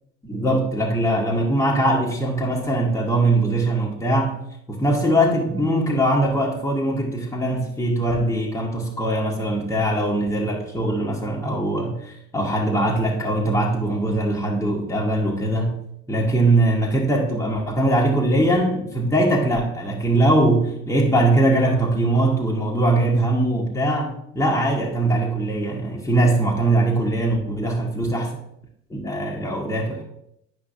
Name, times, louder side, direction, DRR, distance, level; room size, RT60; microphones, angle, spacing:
voice 1, 0.2-4.4 4.7-15.8 16.1-28.3 28.9-30.0, right 1 dB, 10° left, -2 dB, 1.3 m, -21 dB
10.0 x 5.2 x 2.7 m, 0.77 s
hypercardioid pair, 70°, 37 cm